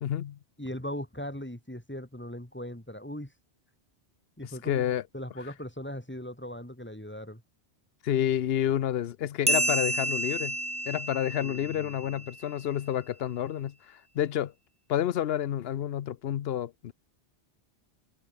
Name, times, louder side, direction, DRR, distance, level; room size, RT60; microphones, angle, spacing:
voice 1, 0.0-0.4 4.4-5.0 8.0-10.6 10.9-14.5 14.9-16.9, left 11 dB, 70° left, 0.9 m, -29 dB
voice 2, 0.6-3.3 4.4-7.4, equal, 10° left, 2.8 m, -39 dB
sound 1, 9.5-12.5, right 1 dB, 5° right, 1.3 m, -30 dB
omnidirectional pair, 1.1 m